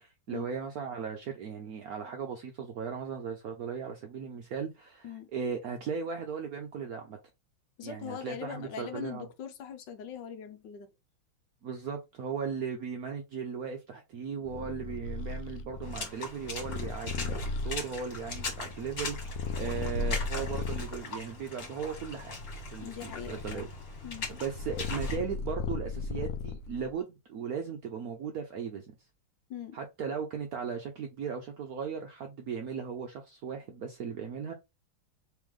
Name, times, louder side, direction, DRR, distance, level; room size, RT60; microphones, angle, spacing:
voice 1, 0.0-7.2 7.8-9.3 11.6-22.4 22.7-23.7 24.3-28.9 29.7-34.5, right 6 dB, 75° right, 0.8 m, -37 dB
voice 2, 7.8-10.9 22.8-23.6 24.0-24.3 29.5-29.8, left 8 dB, 70° left, 1.2 m, -41 dB
Purr, 14.4-21.0 21.6-26.9, left 4 dB, 90° left, 0.8 m, -36 dB
Water / Splash splatter, 15.8-25.2, left 3 dB, 45° left, 2.0 m, -40 dB
3.5 x 3.2 x 3.5 m
omnidirectional pair, 2.3 m